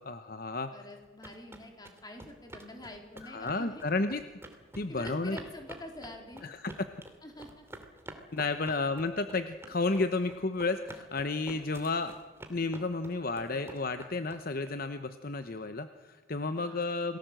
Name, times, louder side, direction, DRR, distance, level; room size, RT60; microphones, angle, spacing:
voice 1, 0.0-0.7 3.2-4.2 4.8-5.4 6.4-6.7 8.3-12.1 12.5-17.2, left 3 dB, 45° left, 9 dB, 0.9 m, -32 dB
voice 2, 0.7-3.8 4.9-6.5 7.2-7.7 8.7-8.8 16.5-16.8, left 1 dB, 20° left, 3 dB, 3.7 m, -46 dB
sound 1, 0.9-14.7, right 1 dB, 10° right, 2.5 m, -49 dB
28.5 x 18.5 x 7.8 m, 1.4 s
head